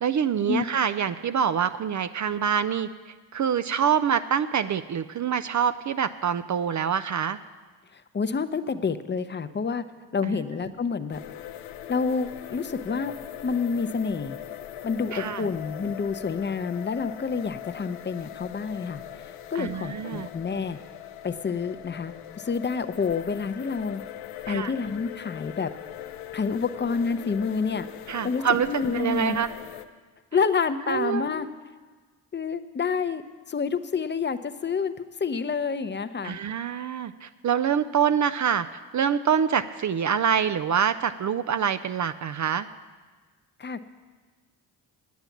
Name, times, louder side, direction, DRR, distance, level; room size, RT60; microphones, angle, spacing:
voice 1, 0.0-7.4 10.2-10.4 15.1-15.5 19.6-20.3 24.5-24.7 28.1-29.5 30.9-31.3 36.2-38.7 38.9-42.7, right 8 dB, 40° right, 13 dB, 0.4 m, -26 dB
voice 2, 7.9-9.8 10.1-11.2 11.9-13.1 13.4-14.4 14.8-20.8 21.2-24.0 24.5-25.7 26.3-27.9 28.2-29.4 30.3-31.5 32.3-33.2 33.5-34.9 35.2-36.4 43.6-43.8, left 5 dB, 25° left, 11 dB, 0.6 m, -28 dB
sound 1, 11.1-29.9, left 11 dB, 85° left, 0.7 m, -41 dB
9.3 x 8.9 x 7.2 m, 1.4 s
supercardioid pair, 65°, 48 cm